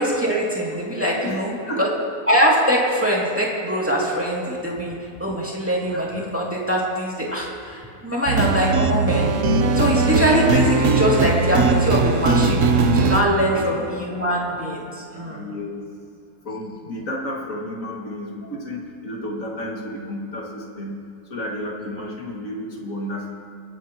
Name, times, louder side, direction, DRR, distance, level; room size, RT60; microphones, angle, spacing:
voice 1, 0.0-1.9 2.3-9.3 9.7-15.4, equal, 10° right, -4 dB, 2.4 m, -22 dB
voice 2, 1.2-1.8 13.5-13.9 15.2-15.8 16.4-21.0 21.2-23.3, left 1 dB, 65° left, -2 dB, 2.6 m, -32 dB
sound 1, 8.3-13.2, right 4 dB, 65° right, 1.2 m, -19 dB
28.0 x 10.0 x 3.0 m, 2.4 s
omnidirectional pair, 1.5 m